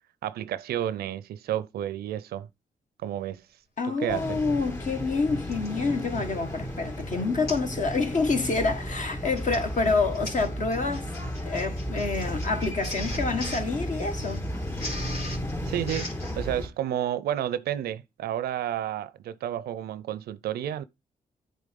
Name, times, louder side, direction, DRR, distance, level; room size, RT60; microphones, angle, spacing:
voice 1, 0.2-2.5 3.0-3.4 4.0-4.4 15.6-16.1 16.4-20.8, right 11 dB, 85° right, 0.5 m, -31 dB
voice 2, 3.8-11.1 11.4-14.4, left 4 dB, 55° left, 1.6 m, -27 dB
sound 1, 4.1-16.7, equal, 20° left, 3.2 m, -34 dB
Printer, 5.5-5.8 6.4-6.6 6.9-7.0 7.5-7.7 8.1-8.3 9.1-16.4, left 1 dB, 80° left, 2.9 m, -40 dB
8.4 x 3.5 x 5.2 m
cardioid pair, 60°, 16 cm